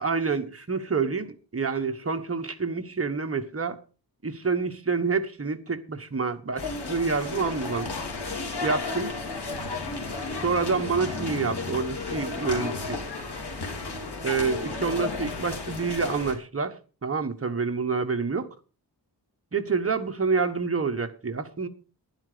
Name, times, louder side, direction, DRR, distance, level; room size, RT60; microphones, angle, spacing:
voice 1, 0.0-3.8 4.2-7.9 8.6-9.1 10.4-13.0 14.2-16.8 17.0-18.5 19.5-21.7, right 4 dB, 30° right, 1.3 m, -27 dB
sound 1, 6.6-16.3, left 4 dB, 65° left, 3.2 m, -33 dB
12.0 x 10.0 x 5.1 m
wide cardioid pair, 125°, 43 cm